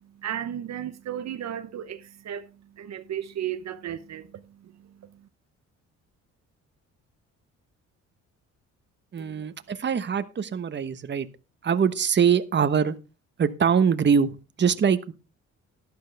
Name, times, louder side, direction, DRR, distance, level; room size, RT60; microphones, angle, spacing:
voice 1, 0.2-4.9 9.2-9.5, right 10 dB, 60° right, 0.9 m, -35 dB
voice 2, 9.1-11.3 11.6-13.0 13.4-15.1, right 7 dB, 35° right, 1.1 m, -23 dB
12.0 x 11.5 x 3.4 m
cardioid pair, 90°, 30 cm